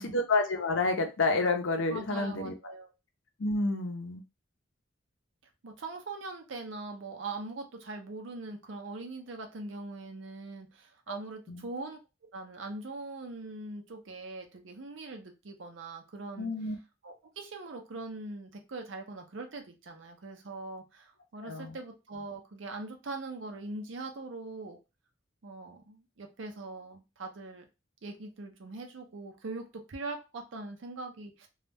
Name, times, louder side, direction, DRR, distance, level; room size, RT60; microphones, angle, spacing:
voice 1, 0.1-2.5 3.4-4.2 11.1-11.2 11.5-11.6 16.4-16.8 21.4-21.8, left 3 dB, 75° left, 5 dB, 0.6 m, -29 dB
voice 2, 1.9-2.9 5.6-12.0 12.3-16.5 17.0-24.8 25.4-27.6 28.0-31.5, right 3 dB, 70° right, 4 dB, 0.6 m, -42 dB
2.3 x 2.0 x 3.3 m, 0.27 s
head